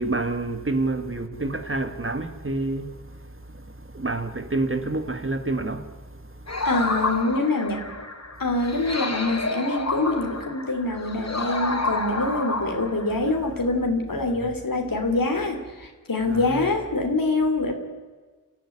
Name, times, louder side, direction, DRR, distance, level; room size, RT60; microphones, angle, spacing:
voice 1, 0.0-6.7 13.1-13.2 16.3-16.7, right 2 dB, 40° right, 1.8 m, -29 dB
sound 1, 6.5-13.3, left 2 dB, 55° left, 3.7 m, -30 dB
voice 2, 6.6-7.8 8.4-17.7, left 2 dB, 85° left, 3.3 m, -25 dB
27.5 x 14.5 x 9.8 m
wide cardioid pair, 60°, 33 cm